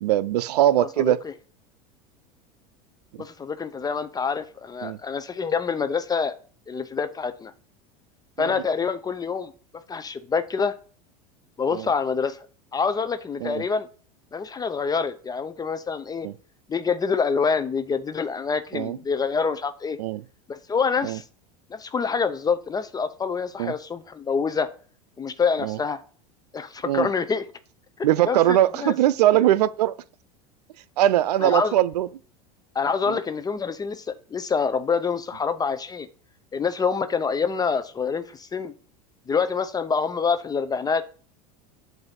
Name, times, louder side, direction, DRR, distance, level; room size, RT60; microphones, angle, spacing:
voice 1, 0.0-1.2 4.8-5.0 8.4-8.6 11.7-11.9 13.4-13.6 16.2-16.3 18.7-19.0 20.0-20.2 21.0-21.2 23.6-23.7 25.6-25.8 26.8-27.1 28.0-30.0 31.0-32.1 33.1-33.2, right 13 dB, 85° right, 0.4 m, -21 dB
voice 2, 0.8-1.2 3.2-6.3 6.7-7.5 8.4-9.5 9.9-10.7 11.6-12.5 12.7-13.9 14.3-16.3 16.7-20.0 20.5-21.2 21.7-24.7 25.2-26.0 26.5-27.5 28.0-28.9 31.4-31.7 32.7-36.1 36.5-38.7 39.3-41.0, left 5 dB, 20° left, 0.5 m, -26 dB
7.7 x 2.6 x 5.7 m
hypercardioid pair, 100°, 20 cm